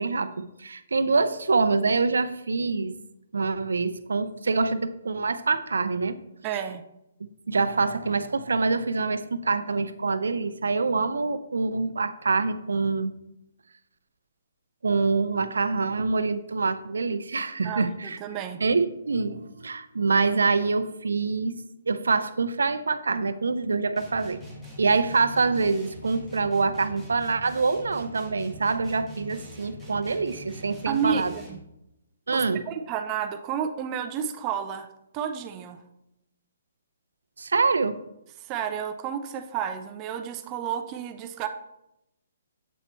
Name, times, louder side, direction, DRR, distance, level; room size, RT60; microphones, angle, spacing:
voice 1, 0.0-2.9 3.3-6.1 7.5-13.1 14.8-18.2 18.6-24.4 24.8-31.3 32.3-32.6 37.4-38.0, right 4 dB, 90° right, 12 dB, 0.5 m, -25 dB
voice 2, 6.4-6.8 17.6-18.6 30.9-31.6 32.3-34.9 35.1-35.8 38.4-41.5, right 8 dB, 25° right, 8 dB, 0.4 m, -31 dB
sound 1, 24.0-31.7, equal, 5° left, 1.4 m, -43 dB
7.9 x 4.3 x 3.1 m, 0.85 s
hypercardioid pair, 155°, 0 cm